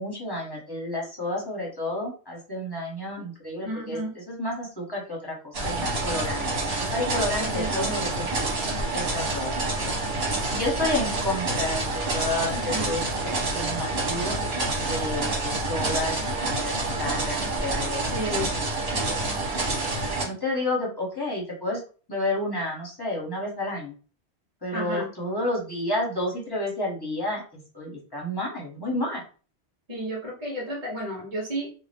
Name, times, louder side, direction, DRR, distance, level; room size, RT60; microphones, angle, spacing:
voice 1, 0.0-4.0 4.3-8.4 8.9-9.9 10.5-13.0 13.3-14.4 14.8-18.0 18.3-18.4 18.8-19.2 20.2-21.8 22.1-23.9 24.6-29.2, left 1 dB, 25° left, -3 dB, 0.9 m, -31 dB
voice 2, 3.6-4.1 7.4-7.9 12.5-12.9 18.1-18.5 24.7-25.1 29.9-31.7, equal, 35° right, -5 dB, 1.2 m, -32 dB
sound 1, 5.5-20.3, right 2 dB, 65° right, 1.3 m, -28 dB
2.7 x 2.1 x 3.3 m, 0.38 s
omnidirectional pair, 1.1 m